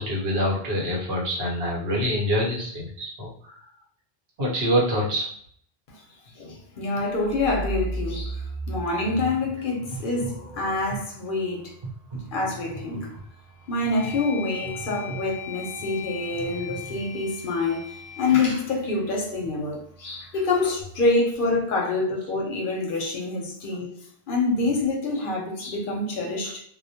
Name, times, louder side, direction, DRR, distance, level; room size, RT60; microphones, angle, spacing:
voice 1, 0.0-3.5 4.4-5.3, equal, 75° right, 1.0 m, -25 dB
voice 2, 6.4-11.8 12.1-13.1 13.7-24.0 24.3-26.6, left 3 dB, 65° left, 0.7 m, -26 dB
sound 1, 7.2-20.8, right 2 dB, 40° right, 0.5 m, -38 dB
sound 2, 12.6-13.0 13.5-19.7, left 7 dB, 25° left, 0.7 m, -40 dB
2.2 x 2.1 x 2.7 m
omnidirectional pair, 1.1 m